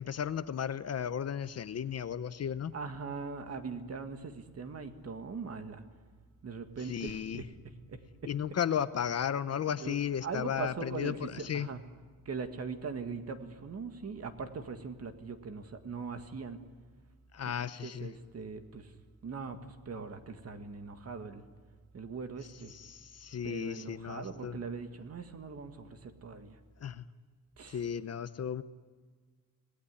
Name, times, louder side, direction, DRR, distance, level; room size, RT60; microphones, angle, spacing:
voice 1, 0.0-2.7 6.8-7.4 8.2-11.7 17.3-18.1 22.7-24.6 26.8-27.0 27.7-28.6, left 8 dB, 45° left, 13 dB, 0.8 m, -34 dB
voice 2, 2.7-5.8 6.4-7.4 7.9-8.3 9.8-11.8 12.3-16.6 17.6-19.0 19.2-21.5 21.9-22.7 23.4-26.6 27.6-27.9, right 5 dB, 45° right, 7 dB, 1.9 m, -41 dB
26.0 x 19.0 x 9.8 m, 1.5 s
wide cardioid pair, 155°, 36 cm